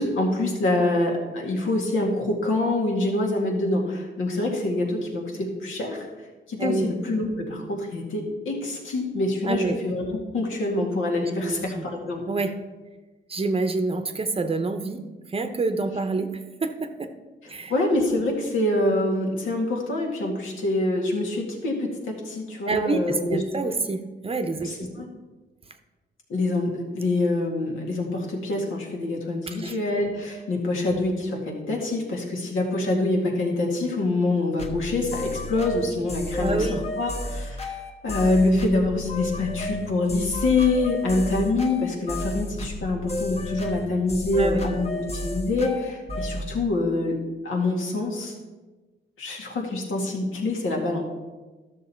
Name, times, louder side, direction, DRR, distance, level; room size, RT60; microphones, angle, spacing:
voice 1, 0.0-6.1 6.5-10.1 10.3-12.2 17.4-23.4 24.4-25.1 26.3-36.7 37.0-47.2 47.4-48.3 49.2-51.0, left 2 dB, 80° left, 0 dB, 2.2 m, -25 dB
voice 2, 6.6-6.9 9.4-9.8 11.2-11.8 12.3-12.6 13.3-15.0 15.3-17.1 17.5-17.7 22.7-25.1 29.5-29.8 36.4-36.8 44.4-44.7, right 3 dB, 30° right, 8 dB, 0.7 m, -27 dB
sound 1, 34.6-46.5, left 1 dB, 30° left, 1.2 m, -32 dB
12.5 x 6.5 x 4.4 m, 1.2 s
cardioid pair, 115°, 20 cm